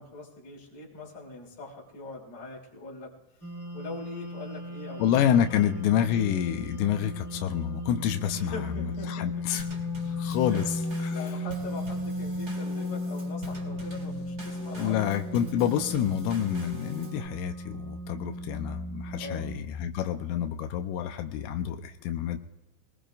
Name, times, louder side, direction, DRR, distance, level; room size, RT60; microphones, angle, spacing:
voice 1, 0.0-3.1 3.7-5.0 5.5-5.8 8.3-9.6 10.0-10.7 11.1-15.0 19.1-19.5, left 3 dB, 35° left, -3 dB, 3.6 m, -42 dB
sound 1, 3.4-19.6, left 1 dB, 10° left, 1.1 m, -36 dB
voice 2, 5.0-9.6 10.2-10.7 11.0-11.2 14.8-22.4, left 10 dB, 85° left, 6 dB, 3.3 m, -28 dB
Drum kit / Snare drum / Bass drum, 9.6-17.3, right 1 dB, 25° right, 1.6 m, -44 dB
25.0 x 19.0 x 2.6 m, 0.96 s
omnidirectional pair, 5.5 m